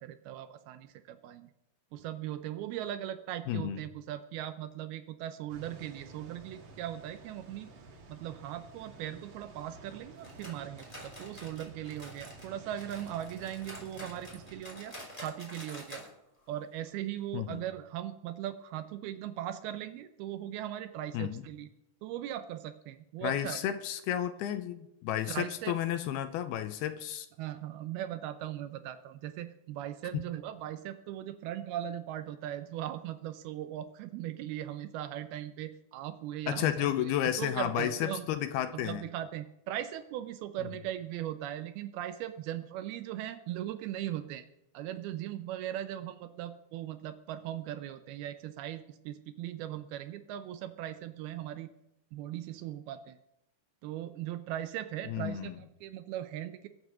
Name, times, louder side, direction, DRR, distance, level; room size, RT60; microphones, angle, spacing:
voice 1, 0.0-1.5 1.9-7.7 8.1-16.1 16.5-21.7 22.0-23.6 25.3-25.8 27.4-37.1 37.4-38.3 38.7-44.5 44.7-51.7 52.1-53.2 53.8-56.7, right 12 dB, 80° right, 10 dB, 2.4 m, -39 dB
voice 2, 3.5-3.8 17.3-17.6 21.1-21.4 23.2-27.3 30.1-30.2 36.5-39.0 55.1-55.5, left 11 dB, 80° left, 10 dB, 2.5 m, -32 dB
sound 1, 5.5-14.6, right 3 dB, 55° right, 1.4 m, -52 dB
sound 2, 10.2-12.5 12.8-16.1 16.4-16.5 16.9-17.0 17.5-17.6, equal, 10° left, 3.1 m, -48 dB
21.5 x 7.9 x 6.1 m, 0.86 s
omnidirectional pair, 4.9 m